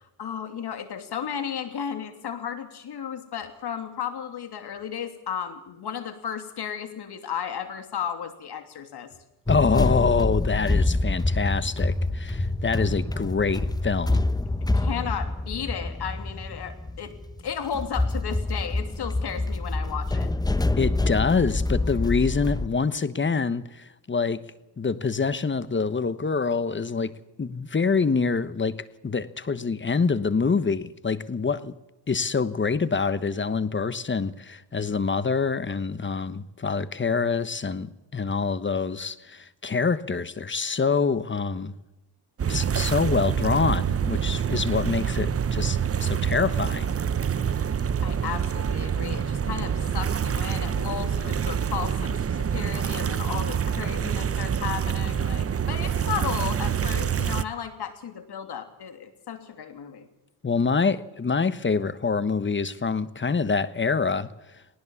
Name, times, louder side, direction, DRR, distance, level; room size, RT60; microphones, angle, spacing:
voice 1, 0.0-9.1 14.6-20.3 48.0-60.1, left 8 dB, 60° left, 8 dB, 3.0 m, -34 dB
voice 2, 9.5-14.2 20.8-24.4 24.8-31.7 32.1-41.7 42.5-46.9 60.4-64.3, left 5 dB, 25° left, 15 dB, 1.2 m, -26 dB
jumping in empty dumpster sounds metallic echoes, 9.5-22.7, left 2 dB, 10° left, 1.0 m, -26 dB
sound 1, 42.4-57.4, right 8 dB, 30° right, 0.9 m, -26 dB
19.5 x 19.0 x 7.1 m, 1.0 s
cardioid pair, 75°, 44 cm